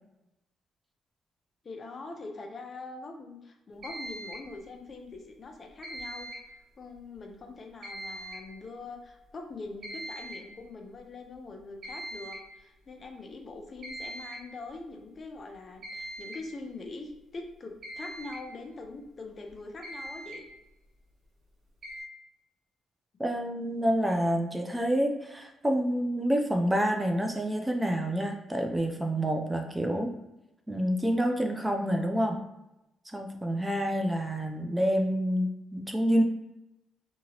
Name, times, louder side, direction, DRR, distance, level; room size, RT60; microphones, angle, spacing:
voice 1, 1.6-6.3 6.8-20.4, left 3 dB, 40° left, 3 dB, 0.5 m, -43 dB
sound 1, 3.8-4.5 5.8-6.5 7.8-8.5 9.8-10.5 11.8-12.5 13.8-14.5 15.8-16.5 17.8-18.4 19.5-19.6 19.8-20.4 21.8-22.0, right 1 dB, 55° right, 1.1 m, -41 dB
voice 2, 23.2-30.2 30.7-32.4 33.1-36.2, equal, 10° right, 3 dB, 0.4 m, -28 dB
2.7 x 2.7 x 2.8 m, 0.93 s
cardioid pair, 90°, 0 cm